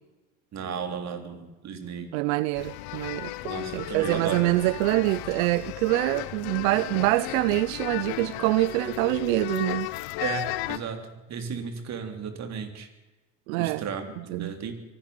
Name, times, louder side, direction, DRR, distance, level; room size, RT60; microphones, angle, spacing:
voice 1, 0.5-2.1 3.5-4.6 10.2-12.9 13.6-14.7, right 6 dB, 40° right, 3.6 m, -34 dB
voice 2, 2.1-3.3 3.7-9.9 13.5-13.8 14.3-14.5, right 20 dB, 75° right, 0.7 m, -25 dB
sound 1, 2.6-10.8, left 17 dB, 60° left, 1.2 m, -35 dB
24.0 x 11.5 x 9.5 m
supercardioid pair, 120°, 42 cm